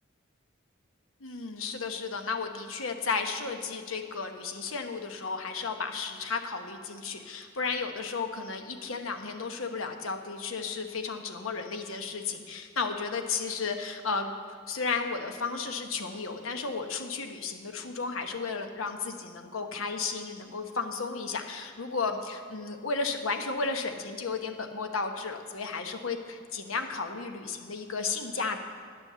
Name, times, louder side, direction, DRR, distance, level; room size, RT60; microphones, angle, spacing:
voice 1, 1.2-14.3 14.7-28.6, left 4 dB, 80° left, 6 dB, 1.0 m, -33 dB
10.0 x 9.7 x 6.8 m, 2.2 s
head